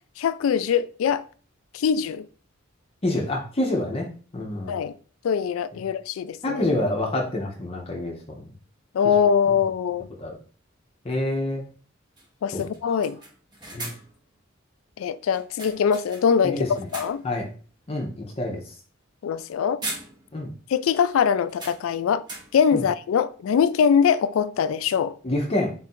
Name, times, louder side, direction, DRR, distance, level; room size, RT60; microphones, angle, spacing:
voice 1, 0.2-1.3 1.7-2.3 4.7-5.0 5.2-6.6 8.9-10.1 12.4-13.2 15.0-17.2 19.2-19.8 20.7-22.3 22.5-25.1, left 7 dB, 80° left, 0.3 m, -22 dB
voice 2, 3.0-4.1 4.3-4.8 6.4-8.5 10.2-10.4 11.0-11.6 12.5-13.0 13.7-13.9 16.4-16.9 17.2-17.5 17.9-18.6 20.3-20.5 22.7-22.8 25.2-25.7, left 1 dB, 30° left, 0.6 m, -27 dB
sound 1, 9.0-9.1 11.1-11.3 11.6-11.7 12.2-12.3 12.6-14.2 15.3-16.4 16.7-17.4 17.8-18.0 19.3-19.5 19.8-20.6 20.8-20.9 21.5-22.7, right 2 dB, 20° right, 0.8 m, -39 dB
3.9 x 2.5 x 4.3 m
head